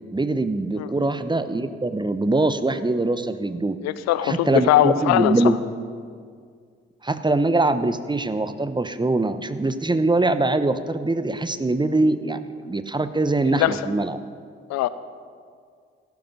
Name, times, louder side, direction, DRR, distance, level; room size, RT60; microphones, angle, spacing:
voice 1, 0.1-3.8 4.2-5.6 7.0-14.2, right 2 dB, 15° right, 11 dB, 1.0 m, -23 dB
voice 2, 0.8-1.1 3.8-5.4 13.5-13.7 14.7-14.9, left 13 dB, 60° left, 15 dB, 0.7 m, -21 dB
17.0 x 14.5 x 5.4 m, 2.1 s
figure-of-eight pair, 40°, 30 cm